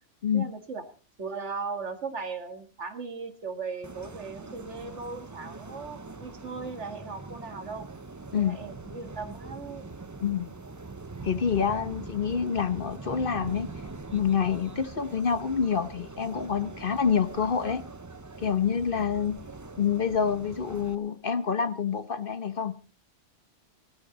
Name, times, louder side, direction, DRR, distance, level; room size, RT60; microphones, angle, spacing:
voice 1, 0.3-0.8 1.2-7.9 8.4-9.8, right 4 dB, 70° right, 8 dB, 2.1 m, -38 dB
sound 1, 3.8-21.0, right 3 dB, 20° right, 0.5 m, -43 dB
voice 2, 11.2-13.7 14.1-17.8 18.4-19.4 19.8-22.7, left 7 dB, 50° left, 12 dB, 1.1 m, -27 dB
18.5 x 13.5 x 4.0 m, 0.37 s
omnidirectional pair, 1.2 m